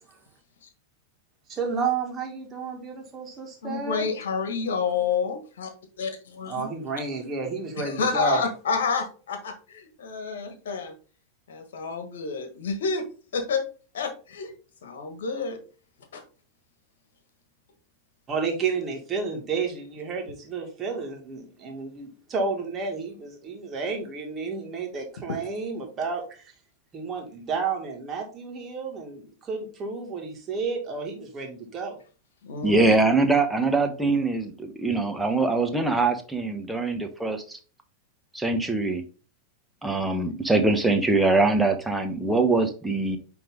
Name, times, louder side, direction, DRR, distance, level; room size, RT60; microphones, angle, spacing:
voice 1, 1.5-4.0 4.9-5.0 6.5-8.4 18.3-26.5 26.9-32.0, right 4 dB, 25° right, 1 dB, 2.2 m, -31 dB
voice 2, 3.6-5.7 6.0-6.7 7.8-10.9 11.5-13.0 13.3-13.6 13.9-14.5 14.8-15.6 16.1-16.2 32.4-32.9, left 5 dB, 60° left, 7 dB, 1.6 m, -29 dB
voice 3, 32.6-37.6 38.3-39.0 39.8-43.2, right 3 dB, 5° right, 5 dB, 1.1 m, -23 dB
9.0 x 3.5 x 3.8 m, 0.37 s
figure-of-eight pair, 90°, 0 cm